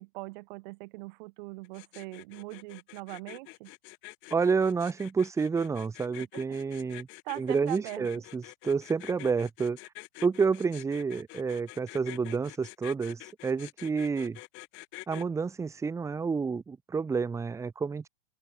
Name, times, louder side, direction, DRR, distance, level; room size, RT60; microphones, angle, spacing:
voice 1, 0.0-3.7 6.2-6.6 7.2-8.2, right 24 dB, 50° right, 5.5 m, -41 dB
sound 1, 1.6-15.2, left 23 dB, 40° left, 3.7 m, -47 dB
voice 2, 4.3-7.1 7.4-9.8 10.2-14.4 15.1-18.1, right 5 dB, 10° right, 1.3 m, -29 dB
open air
hypercardioid pair, 140°, 30 cm